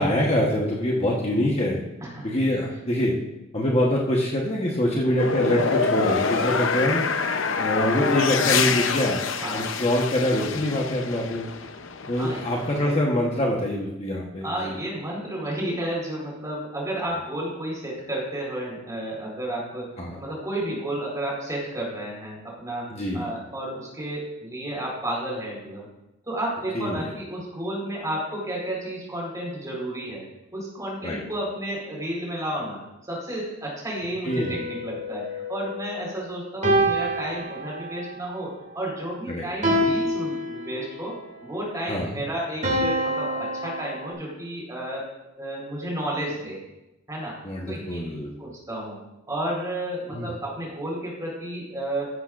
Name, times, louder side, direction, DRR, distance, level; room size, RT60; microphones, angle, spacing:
voice 1, 0.0-1.8 2.2-3.1 3.5-7.0 7.6-9.2 9.5-11.5 12.1-14.8 20.0-20.2 22.9-23.3 26.7-27.1 31.0-31.2 34.2-34.6 39.3-39.5 41.9-42.2 47.4-48.3 50.1-50.3, left 1 dB, 30° left, -2 dB, 1.2 m, -25 dB
sound 1, 5.2-13.0, left 5 dB, 70° left, 0.8 m, -26 dB
voice 2, 9.3-9.7 12.2-12.5 14.4-25.9 26.3-30.2 30.5-32.8 33.1-45.1 45.4-46.6 47.1-47.4 47.7-48.0 48.4-49.0 49.3-52.0, right 1 dB, 15° right, -3 dB, 4.1 m, -32 dB
sound 2, 34.3-36.0 36.6-38.1 39.6-41.1 42.6-44.1, equal, 35° right, 2.6 m, -26 dB
14.0 x 11.0 x 2.6 m, 0.95 s
head